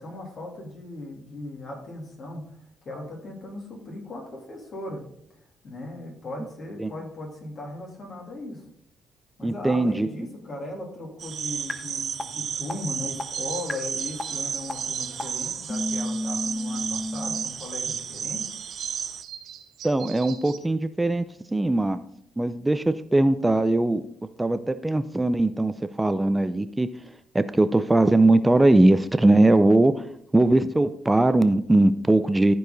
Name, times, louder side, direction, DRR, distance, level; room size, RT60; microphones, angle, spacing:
voice 1, 0.0-2.4 2.8-5.1 5.6-8.6 9.4-18.5, left 2 dB, 50° left, 0 dB, 2.9 m, -37 dB
voice 2, 9.4-10.1 19.8-21.2 21.5-22.0 22.4-24.0 24.4-26.9 27.3-30.1 30.3-32.5, right 2 dB, 15° right, 11 dB, 0.5 m, -20 dB
sound 1, 11.2-19.2, right 7 dB, 60° right, 0.6 m, -32 dB
sound 2, 11.7-11.8 12.2-12.3 12.7-12.8 13.2-13.3 13.7-13.8 14.2-14.3 14.7-14.8 15.2-15.3 15.7-17.5, left 1 dB, 20° left, 0.9 m, -30 dB
sound 3, 13.3-20.6, right 8 dB, 80° right, 0.9 m, -44 dB
13.0 x 4.7 x 4.0 m, 0.69 s
cardioid pair, 90°, 0 cm